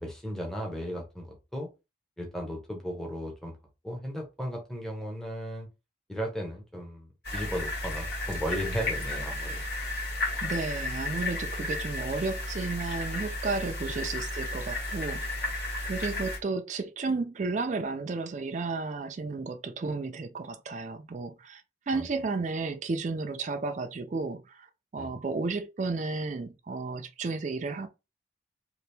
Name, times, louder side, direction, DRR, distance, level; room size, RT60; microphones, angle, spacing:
voice 1, 0.0-1.7 2.2-3.5 3.8-5.7 6.1-9.6 21.9-22.1 25.0-25.2, equal, 5° left, 0.7 m, -36 dB
sound 1, 7.2-16.4, left 2 dB, 60° left, 1.6 m, -33 dB
voice 2, 10.4-15.5 15.9-24.7 24.9-27.9, right 3 dB, 40° right, 0.3 m, -33 dB
2.8 x 2.5 x 3.3 m
head